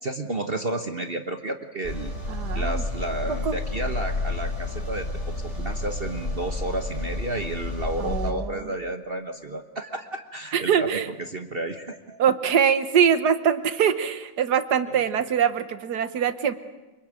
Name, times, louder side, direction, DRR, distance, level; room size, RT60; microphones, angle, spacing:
voice 1, 0.0-2.1 2.5-5.1 5.4-12.2 14.9-15.0, right 2 dB, 35° right, 7 dB, 1.2 m, -32 dB
sound 1, 1.8-8.3, left 2 dB, 35° left, 5.2 m, -30 dB
voice 2, 2.3-2.7 3.5-3.6 8.0-8.6 10.5-11.1 12.2-16.5, right 8 dB, 65° right, 12 dB, 1.7 m, -23 dB
25.0 x 23.0 x 9.0 m, 1.1 s
omnidirectional pair, 2.0 m